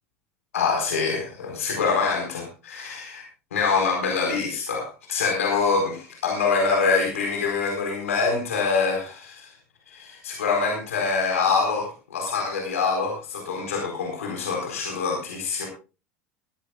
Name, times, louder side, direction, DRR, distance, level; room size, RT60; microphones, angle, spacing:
voice 1, 0.5-3.2 3.5-9.5 9.9-15.7, left 5 dB, 70° left, 2 dB, 4.4 m, -25 dB
19.0 x 15.5 x 2.4 m, 0.32 s
figure-of-eight pair, 75°, 8 cm